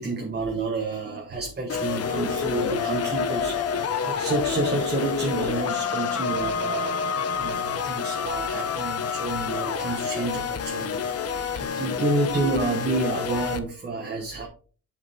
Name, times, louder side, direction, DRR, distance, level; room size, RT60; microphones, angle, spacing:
voice 1, 0.0-14.5, right 2 dB, 30° right, 1 dB, 1.3 m, -29 dB
sound 1, 1.7-13.6, left 6 dB, 50° left, 0.8 m, -28 dB
8.3 x 5.2 x 3.5 m, 0.39 s
wide cardioid pair, 135°, 32 cm